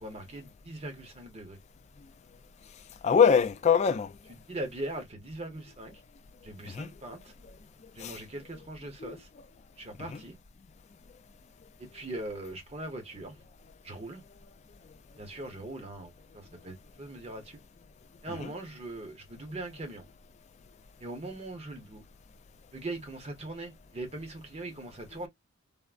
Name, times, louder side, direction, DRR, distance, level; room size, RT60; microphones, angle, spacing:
voice 1, 0.0-1.6 4.5-6.0 6.4-7.3 7.9-9.3 9.8-10.3 11.8-13.4 13.8-14.2 15.2-17.6 18.2-20.1 21.0-22.1 22.7-25.3, right 2 dB, 30° right, 0.7 m, -40 dB
voice 2, 3.0-4.1 6.7-6.9 8.0-8.2 9.0-9.2 10.1-10.2 18.3-18.5, left 6 dB, 30° left, 0.3 m, -24 dB
3.5 x 2.0 x 2.3 m
head